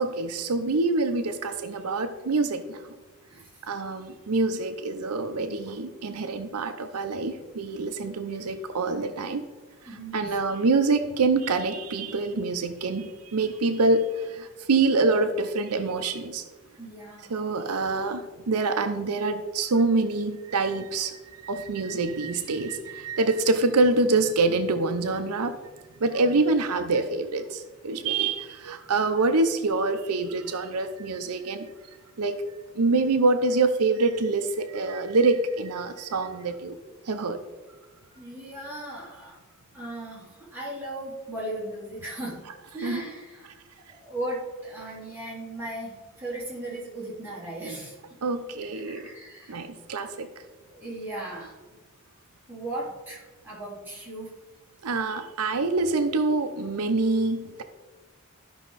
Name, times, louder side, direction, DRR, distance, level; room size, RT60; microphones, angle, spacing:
voice 1, 0.0-2.8 3.6-9.4 9.8-16.4 17.3-25.6 26.0-31.7 32.2-32.4 32.7-36.8 37.1-37.4 42.8-43.1 48.2-49.1 49.5-50.3 54.8-57.6, right 3 dB, 85° right, 8 dB, 0.6 m, -26 dB
voice 2, 9.9-10.4 16.8-17.3 27.9-28.1 38.1-39.4 39.7-42.4 42.7-43.5 43.9-47.9 48.7-49.6 50.7-51.5 52.5-54.3, right 1 dB, 10° right, -8 dB, 3.5 m, -37 dB
13.0 x 5.6 x 4.1 m, 1.2 s
head